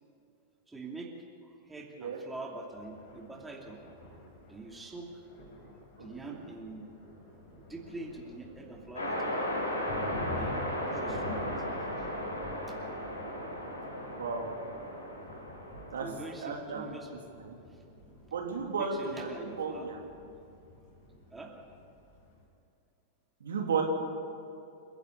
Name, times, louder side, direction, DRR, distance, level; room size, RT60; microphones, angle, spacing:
voice 1, 0.7-1.2 1.4-3.8 4.5-5.3 6.0-6.9 7.6-9.4 10.4-12.1 12.7-12.8 16.0-17.1 17.7-18.2 18.8-19.9 21.3-21.5, right 2 dB, 10° right, 0 dB, 2.7 m, -45 dB
Thunder, 2.7-22.4, left 2 dB, 45° left, 5.9 m, -48 dB
voice 2, 6.0-6.4 14.2-14.4 15.9-16.1 16.4-17.0 17.4-17.6 18.3-20.0 23.4-23.8, right 5 dB, 65° right, 1 dB, 3.1 m, -34 dB
sound 1, 8.9-16.3, equal, 75° left, 5.4 m, -36 dB
29.0 x 11.0 x 8.4 m, 2.7 s
figure-of-eight pair, 95°, 0 cm